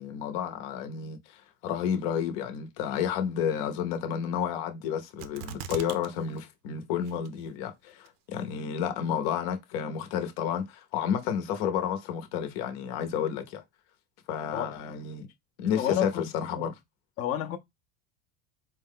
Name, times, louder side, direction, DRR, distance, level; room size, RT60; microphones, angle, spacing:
voice 1, 0.0-13.6 14.3-15.3 15.6-16.8, left 8 dB, 60° left, 0.9 m, -31 dB
sound 1, 5.2-6.1 6.4-6.5 7.1-7.5 8.1-8.2, right 8 dB, 50° right, 0.6 m, -39 dB
voice 2, 15.8-16.3 16.6-16.7 17.2-17.6, left 10 dB, 35° left, 0.6 m, -29 dB
4.3 x 2.1 x 3.6 m
supercardioid pair, 140°, 40 cm